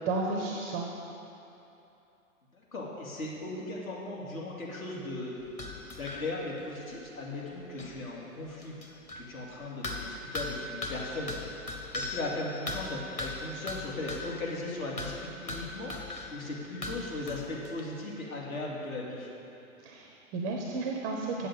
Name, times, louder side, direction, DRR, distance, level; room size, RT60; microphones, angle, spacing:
voice 1, 0.1-0.9 19.8-21.5, right 3 dB, 15° right, 0 dB, 0.4 m, -32 dB
voice 2, 2.5-5.5 6.0-11.5 11.9-19.3, left 2 dB, 70° left, -3 dB, 2.9 m, -38 dB
sound 1, 5.4-6.3 6.6-6.7 6.9-7.0 7.4-7.5 7.8-8.0 8.6-9.3 9.8-14.5 15.0-16.4 16.8-17.8, left 2 dB, 15° left, 0.8 m, -39 dB
8.1 x 7.5 x 8.5 m, 2.8 s
hypercardioid pair, 130°, 43 cm